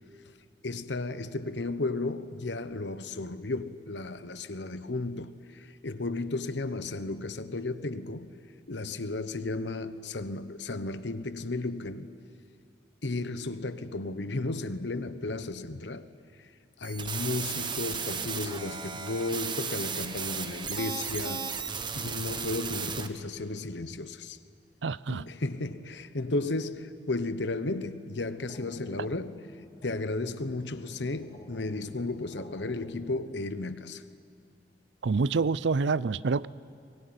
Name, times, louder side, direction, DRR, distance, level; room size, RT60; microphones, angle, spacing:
voice 1, 0.6-8.3 8.7-12.1 13.0-16.1 16.8-21.5 22.0-24.4 25.1-29.3 29.8-34.0, left 2 dB, 80° left, 1.0 m, -34 dB
sound 1, 16.8-23.1, right 6 dB, 25° right, 1.1 m, -35 dB
voice 2, 24.8-25.3 35.0-36.5, right 4 dB, 80° right, 0.5 m, -27 dB
sound 2, 28.0-33.2, equal, 35° left, 3.5 m, -50 dB
23.0 x 22.0 x 9.6 m
head